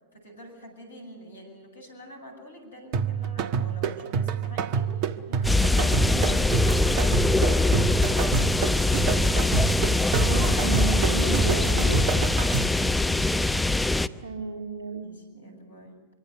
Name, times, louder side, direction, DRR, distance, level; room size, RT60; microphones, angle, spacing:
voice 1, 0.1-8.9 14.9-16.0, right 1 dB, 75° left, 5 dB, 7.7 m, -45 dB
sound 1, 2.9-12.9, right 7 dB, 45° right, 1.2 m, -28 dB
sound 2, 5.4-14.1, left 2 dB, 5° left, 0.8 m, -23 dB
voice 2, 10.1-12.0 14.2-15.1, right 5 dB, 65° right, 1 dB, 2.8 m, -33 dB
25.5 x 24.5 x 6.9 m, 1.3 s
figure-of-eight pair, 90°, 0 cm